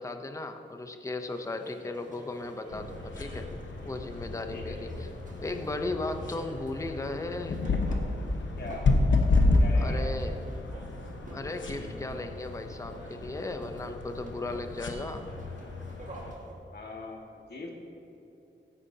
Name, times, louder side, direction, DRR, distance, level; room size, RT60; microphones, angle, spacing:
voice 1, 0.0-3.5 3.8-4.9 5.4-7.6 9.7-10.4 11.3-15.3, left 2 dB, 15° left, 7 dB, 0.5 m, -36 dB
sound 1, 1.2-16.5, right 1 dB, 40° right, 1.7 m, -51 dB
voice 2, 1.7-2.0 4.5-5.1 6.0-6.2 8.6-8.9 9.6-10.2 11.7-12.0 16.7-17.7, left 3 dB, 55° left, 0 dB, 1.7 m, -42 dB
sound 2, 2.7-16.3, left 2 dB, 70° left, 1.0 m, -30 dB
15.5 x 9.8 x 2.7 m, 3.0 s
wide cardioid pair, 150°, 20 cm